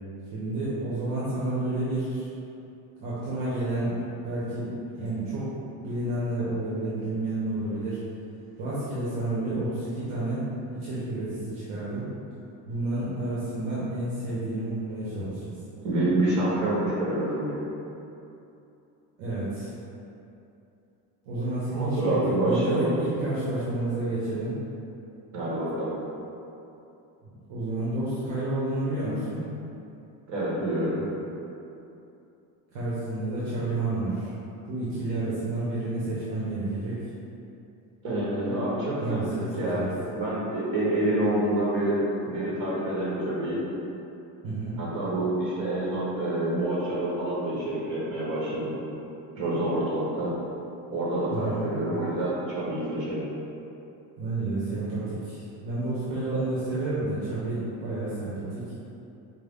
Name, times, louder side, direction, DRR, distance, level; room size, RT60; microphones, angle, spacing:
voice 1, 0.3-2.3 3.0-5.5 5.8-8.0 8.6-10.4 10.7-12.1 12.7-15.6 19.2-19.7 21.2-24.6 27.2-29.4 32.7-34.3 34.7-37.0 39.0-39.9 44.4-44.8 51.3-51.7 54.2-58.7, right 2 dB, 75° right, -9 dB, 0.9 m, -30 dB
voice 2, 15.8-17.6 21.7-23.0 25.3-25.9 30.3-31.0 38.0-39.2 39.5-39.8 40.1-43.6 44.8-48.8 49.4-50.3 50.9-53.2, right 1 dB, 50° right, -7 dB, 1.3 m, -27 dB
4.6 x 2.1 x 3.5 m, 2.8 s
cardioid pair, 175°, 39 cm